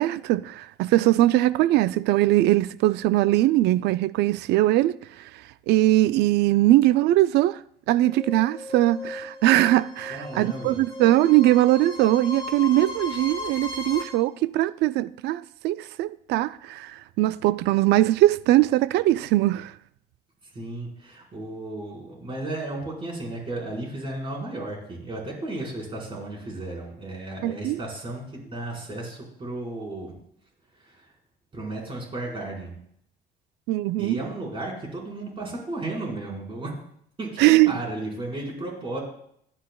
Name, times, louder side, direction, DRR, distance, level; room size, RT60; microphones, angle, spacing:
voice 1, 0.0-4.9 5.7-7.6 7.9-19.7 27.4-27.8 33.7-34.2 37.4-37.7, right 15 dB, 80° right, 0.4 m, -21 dB
sound 1, 8.0-14.0, left 2 dB, 25° left, 3.2 m, -36 dB
voice 2, 10.1-10.8 20.5-30.1 30.7-31.1 31.5-32.7 34.0-36.8 37.2-39.0, right 2 dB, 30° right, 4.6 m, -34 dB
16.0 x 10.5 x 2.3 m
cardioid pair, 110°, 17 cm